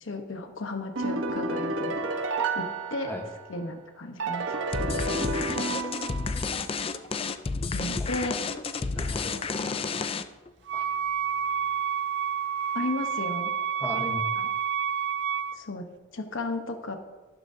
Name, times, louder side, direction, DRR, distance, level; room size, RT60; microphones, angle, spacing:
voice 1, 0.0-2.0 2.5-3.2 3.5-5.6 7.7-8.4 9.3-9.4 12.7-13.5 14.4-14.5 15.5-17.0, left 2 dB, 75° left, 6 dB, 1.0 m, -35 dB
sound 1, 1.0-3.6 4.2-6.7, right 3 dB, 75° right, 1.1 m, -31 dB
sound 2, 4.7-10.5, left 4 dB, 30° left, 0.4 m, -31 dB
voice 2, 8.8-9.9 10.7-10.8 13.8-14.2, left 1 dB, 10° left, 2 dB, 1.1 m, -38 dB
Wind instrument woodwind instrument, 10.7-15.6, right 8 dB, 55° right, 0.3 m, -29 dB
13.0 x 12.0 x 2.7 m, 1.2 s
head